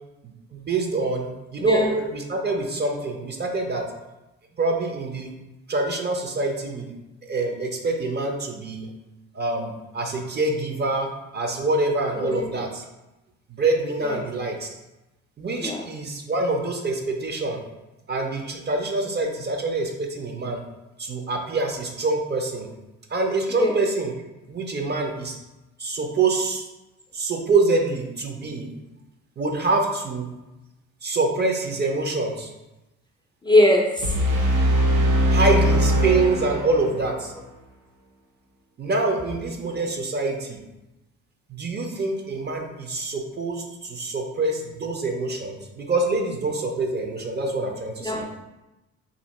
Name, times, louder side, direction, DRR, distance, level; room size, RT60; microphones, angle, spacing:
voice 1, 0.5-3.8 4.6-5.3 5.7-6.9 7.2-8.9 9.3-11.1 11.3-12.8 13.5-14.7 15.4-17.6 18.1-20.6 21.0-22.7 23.1-24.1 24.5-25.4 25.8-26.7 27.1-28.7 29.4-30.3 31.0-32.5 35.3-37.3 38.8-40.6 41.5-48.2, right 3 dB, 35° right, 2 dB, 0.6 m, -25 dB
voice 2, 12.3-12.6 14.0-14.2 15.6-15.8 23.5-23.8 33.4-33.9 48.0-48.4, left 1 dB, 15° left, 0 dB, 0.4 m, -21 dB
sound 1, 34.0-37.1, equal, 80° right, 0.7 m, -21 dB
2.8 x 2.7 x 4.1 m, 1.0 s
cardioid pair, 90°, 30 cm